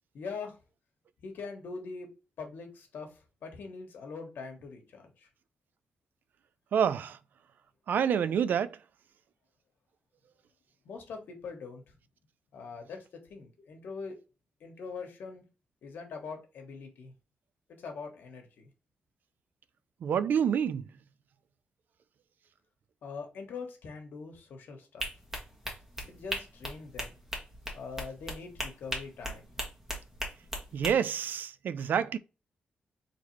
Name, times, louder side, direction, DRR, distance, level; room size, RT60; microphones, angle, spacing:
voice 1, 0.1-0.6 1.2-2.1 2.4-5.3 10.8-11.9 12.5-13.0 13.3-14.2 14.6-15.4 15.8-17.1 17.8-18.7 23.0-25.0 26.1-27.2 27.7-29.4, left 4 dB, 85° left, 1.2 m, -42 dB
voice 2, 6.7-7.2 7.9-8.8 20.0-20.8 30.7-32.2, right 8 dB, 75° right, 0.3 m, -27 dB
sound 1, 25.0-30.9, equal, 10° right, 1.3 m, -38 dB
4.0 x 3.1 x 3.1 m
cardioid pair, 100°, 3 cm